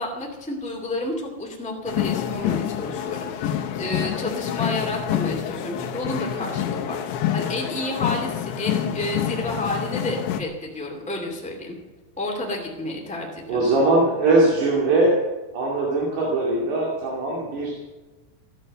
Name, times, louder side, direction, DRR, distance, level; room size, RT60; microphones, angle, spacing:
voice 1, 0.0-7.0 7.3-11.7 12.2-13.7, left 1 dB, 5° left, -1 dB, 0.5 m, -30 dB
sound 1, 1.9-10.4, left 10 dB, 80° left, 3.3 m, -27 dB
voice 2, 13.5-15.2 15.5-17.8, right 2 dB, 65° right, -3 dB, 4.4 m, -21 dB
16.0 x 11.0 x 7.6 m, 1.2 s
omnidirectional pair, 5.2 m